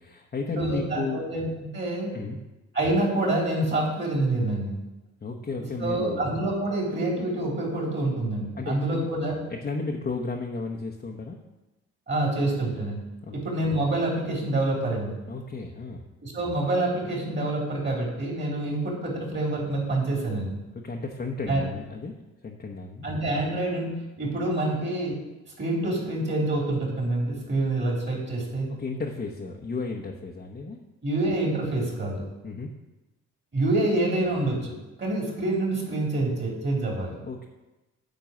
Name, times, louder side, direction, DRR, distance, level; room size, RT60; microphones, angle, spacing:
voice 1, 0.0-1.3 2.1-2.4 5.2-6.2 8.6-9.1 9.5-11.4 13.2-13.4 15.3-16.0 20.7-22.1 22.4-23.1 28.7-30.8 32.4-32.7 37.2-37.5, left 3 dB, 30° left, 0 dB, 1.0 m, -33 dB
voice 2, 0.6-1.5 1.7-2.1 2.7-4.7 5.8-9.4 12.1-13.0 13.3-15.2 16.2-20.5 21.5-21.6 23.0-25.2 25.6-28.7 31.0-32.2 33.5-37.2, right 2 dB, 35° right, -2 dB, 3.6 m, -27 dB
9.2 x 4.5 x 7.4 m, 1.1 s
cardioid pair, 90°, 30 cm